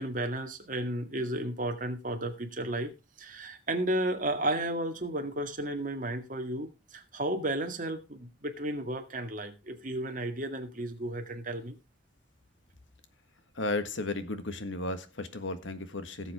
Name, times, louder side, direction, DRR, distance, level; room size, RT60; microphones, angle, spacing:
voice 1, 0.0-2.9 3.2-11.8, right 1 dB, 45° right, 1.9 m, -33 dB
voice 2, 13.5-16.3, left 2 dB, 80° left, 1.7 m, -34 dB
17.5 x 7.5 x 3.6 m
head